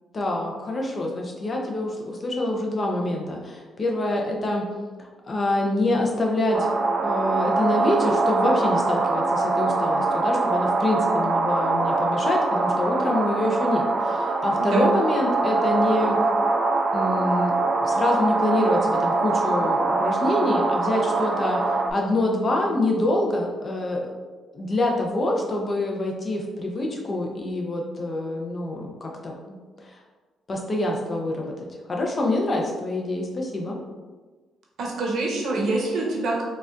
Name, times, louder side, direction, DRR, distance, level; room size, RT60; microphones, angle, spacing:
voice 1, 0.1-4.7 5.0-6.7 7.0-16.2 16.9-17.5 17.8-24.1 24.5-29.6 29.8-30.0 30.5-33.8, left 1 dB, 35° left, 0 dB, 0.7 m, -26 dB
sound 1, 6.5-21.9, right 3 dB, 35° right, 0.3 m, -23 dB
voice 2, 34.8-36.4, right 2 dB, 70° right, -2 dB, 0.8 m, -25 dB
3.9 x 2.4 x 2.6 m, 1.3 s
cardioid pair, 90°, 0 cm